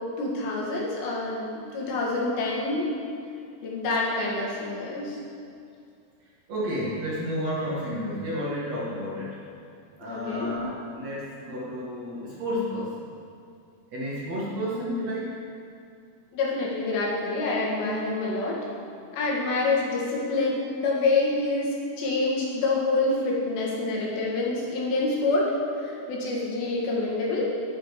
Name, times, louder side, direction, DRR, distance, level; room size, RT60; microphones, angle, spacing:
voice 1, 0.2-2.9 3.6-5.2 10.0-10.5 16.3-18.6 19.1-27.5, left 3 dB, 90° left, -4 dB, 4.1 m, -27 dB
voice 2, 6.5-9.4 10.0-13.1 13.9-15.4, equal, 50° right, -7 dB, 2.3 m, -31 dB
10.0 x 9.4 x 4.8 m, 2.4 s
omnidirectional pair, 4.8 m